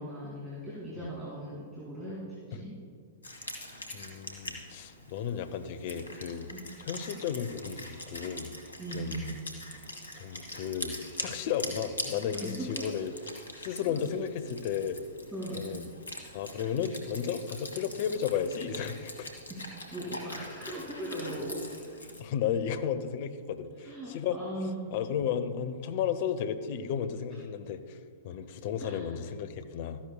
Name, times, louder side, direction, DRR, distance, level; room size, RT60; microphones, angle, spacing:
voice 1, 0.0-2.8 6.5-6.6 8.8-9.3 12.4-12.9 13.8-14.0 15.3-15.7 19.5-21.9 23.8-24.8 27.3-27.4 28.8-29.1, right 1 dB, 15° right, -7 dB, 2.4 m, -39 dB
Wind instrument woodwind instrument, 3.2-22.2, left 1 dB, 80° left, 1.6 m, -43 dB
voice 2, 3.9-6.5 6.8-8.5 8.9-9.4 10.1-13.1 13.6-15.0 15.5-15.9 16.3-19.3 22.2-24.4 24.9-28.0 28.2-30.0, left 8 dB, 50° left, 11 dB, 0.6 m, -33 dB
13.5 x 11.0 x 2.3 m, 2.2 s
figure-of-eight pair, 105°, 0 cm